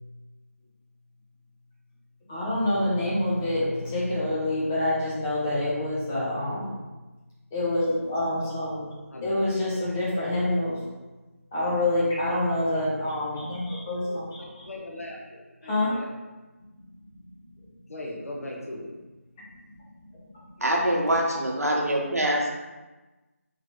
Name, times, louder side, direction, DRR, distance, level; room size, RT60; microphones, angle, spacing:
voice 1, 2.3-6.8 7.5-8.9 9.2-10.8 11.5-14.7 15.7-15.9 19.7-19.8, left 1 dB, 10° left, 0.5 m, -27 dB
voice 2, 14.6-16.1 17.9-18.9, left 1 dB, 70° left, 1.0 m, -38 dB
voice 3, 20.6-22.5, right 1 dB, 85° right, 0.9 m, -24 dB
3.9 x 3.2 x 2.9 m
figure-of-eight pair, 170°, 8 cm